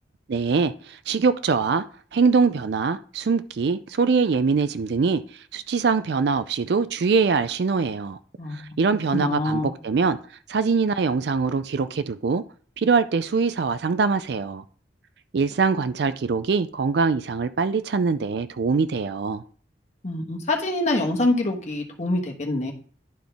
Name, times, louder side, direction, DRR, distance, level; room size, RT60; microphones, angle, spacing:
voice 1, 0.3-1.8 2.1-5.2 5.5-8.2 8.5-10.2 10.5-12.4 12.8-14.6 15.3-19.4, right 5 dB, 65° right, 0.4 m, -23 dB
voice 2, 8.4-8.7 9.1-9.7 20.0-22.7, left 2 dB, 40° left, 1.3 m, -25 dB
11.5 x 3.8 x 3.5 m
head